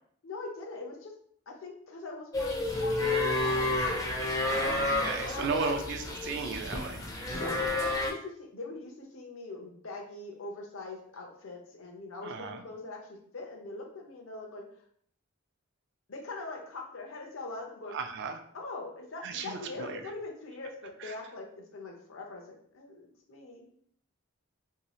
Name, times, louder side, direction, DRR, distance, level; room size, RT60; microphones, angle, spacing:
voice 1, 0.2-1.1 1.5-3.9 5.2-5.7 7.3-14.6 16.1-18.0 18.5-21.4 21.7-23.7, left 3 dB, 70° left, 1 dB, 0.6 m, -42 dB
sound 1, 2.3-8.1, left 2 dB, 15° left, 0.4 m, -30 dB
voice 2, 4.4-7.0 12.2-12.6 17.9-18.4 19.2-20.0 21.0-21.1, right 5 dB, 55° right, 6 dB, 0.3 m, -35 dB
2.7 x 2.3 x 3.0 m, 0.64 s
head